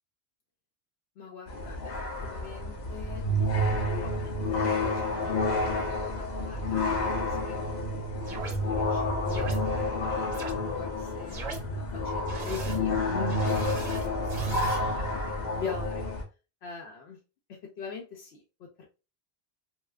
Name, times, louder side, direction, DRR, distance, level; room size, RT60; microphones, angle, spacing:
voice 1, 1.2-1.9 2.2-4.6 4.8-9.6 9.9-10.3 10.6-11.4 12.1-16.1 16.6-17.2 17.5-18.8, left 6 dB, 80° left, 0 dB, 0.8 m, -42 dB
sound 1, 1.5-16.2, left 1 dB, 50° left, 0.6 m, -29 dB
sound 2, 8.2-8.6 9.3-9.6 10.3-10.5 11.3-11.6 12.3-12.8 13.3-14.8, right 4 dB, 45° right, 0.8 m, -39 dB
2.3 x 2.3 x 3.3 m, 0.31 s
omnidirectional pair, 1.1 m